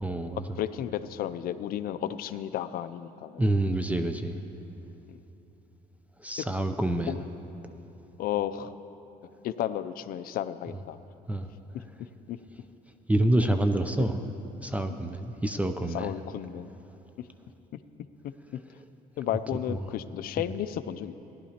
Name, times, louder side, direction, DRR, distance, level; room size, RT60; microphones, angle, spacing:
voice 1, 0.0-0.6 3.4-4.4 6.2-7.2 11.3-11.5 13.1-14.2 14.6-16.1 19.7-19.8, right 1 dB, 10° right, 7 dB, 0.4 m, -27 dB
voice 2, 0.6-3.4 5.1-5.2 6.4-6.5 7.1-7.3 8.2-8.7 9.4-11.0 12.3-12.4 14.9-15.0 15.9-16.7 19.2-21.1, left 11 dB, 60° left, 12 dB, 0.4 m, -33 dB
16.5 x 11.0 x 2.9 m, 3.0 s
cardioid pair, 110°, 17 cm